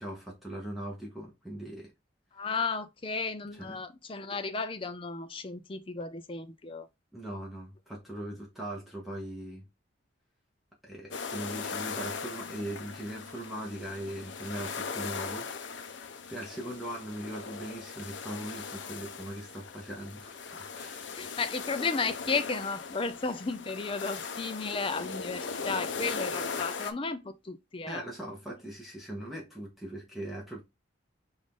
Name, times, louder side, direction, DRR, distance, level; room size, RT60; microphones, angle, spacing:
voice 1, 0.0-1.9 3.5-3.9 7.1-9.6 10.8-15.5 16.3-21.2 27.9-30.6, right 1 dB, ahead, 1.1 m, -40 dB
voice 2, 2.3-6.9 21.2-28.0, left 4 dB, 25° left, 0.4 m, -34 dB
sound 1, 11.1-26.9, left 5 dB, 65° left, 0.6 m, -39 dB
5.1 x 2.6 x 3.6 m
head